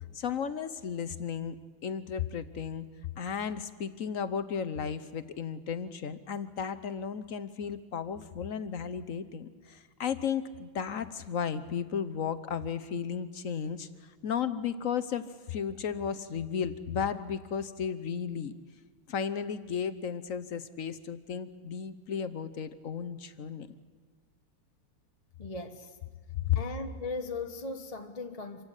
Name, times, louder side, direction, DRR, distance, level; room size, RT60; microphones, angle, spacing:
voice 1, 0.1-1.5 1.8-2.9 3.2-18.5 19.1-23.7 26.5-26.6, left 7 dB, 60° left, 0.8 m, -34 dB
voice 2, 25.4-26.0 26.5-28.6, left 3 dB, 30° left, 0.7 m, -38 dB
26.0 x 16.0 x 9.9 m
omnidirectional pair, 2.4 m